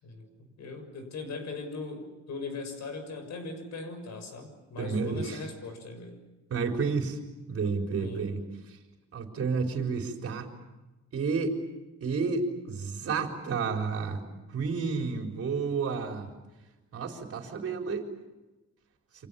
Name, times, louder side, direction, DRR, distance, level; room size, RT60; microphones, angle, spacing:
voice 1, 0.0-6.2 8.0-8.3, left 3 dB, 70° left, 8 dB, 6.6 m, -39 dB
voice 2, 4.8-5.4 6.5-7.2 7.5-8.4 8.7-8.8 9.1-10.5 11.1-11.6 12.0-14.2 14.5-16.3 16.9-18.1, right 5 dB, 50° right, 2 dB, 4.5 m, -30 dB
29.0 x 27.0 x 7.1 m, 1.1 s
cardioid pair, 145°, 29 cm